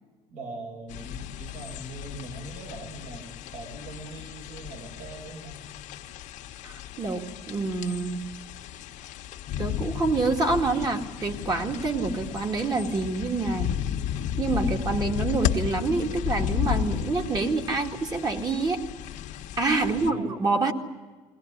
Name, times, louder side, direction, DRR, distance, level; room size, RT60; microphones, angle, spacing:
voice 1, 0.3-5.6 19.8-20.3, right 2 dB, 70° right, 1 dB, 6.5 m, -41 dB
sound 1, 0.9-20.1, left 10 dB, 70° left, 1.3 m, -34 dB
voice 2, 6.6-8.3 9.6-13.7 14.4-18.9 19.6-20.7, right 3 dB, 30° right, 3 dB, 2.3 m, -27 dB
21.5 x 18.0 x 10.0 m, 1.4 s
cardioid pair, 125°, 13 cm